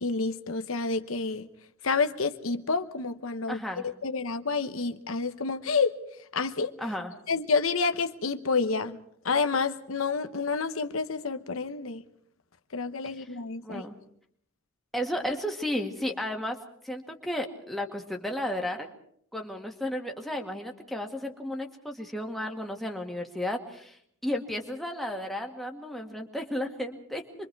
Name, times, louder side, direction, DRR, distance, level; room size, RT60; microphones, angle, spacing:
voice 1, 0.0-1.5 1.8-6.0 6.3-6.7 7.3-12.0 12.7-13.9, left 4 dB, 70° left, 0.9 m, -29 dB
voice 2, 3.5-3.9 6.8-7.1 13.6-13.9 14.9-16.6 16.8-18.9 19.3-27.2, left 1 dB, ahead, 1.8 m, -33 dB
27.0 x 23.0 x 4.7 m
head